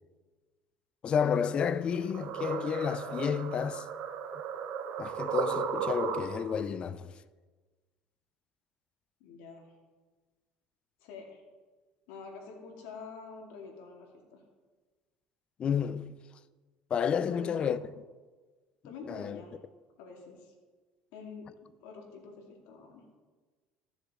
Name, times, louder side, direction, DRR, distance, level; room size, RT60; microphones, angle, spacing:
voice 1, 1.0-3.9 5.0-7.1 15.6-16.2 16.9-17.8 19.1-19.4, left 7 dB, 35° left, 0.4 m, -31 dB
sound 1, 1.5-6.6, right 7 dB, 60° right, 0.8 m, -35 dB
voice 2, 9.2-9.8 11.0-11.4 12.1-14.4 17.3-17.8 18.8-19.6 20.0-20.5 21.1-23.0, left 4 dB, 85° left, 2.2 m, -47 dB
14.0 x 7.0 x 3.6 m
cardioid pair, 130°, 3 cm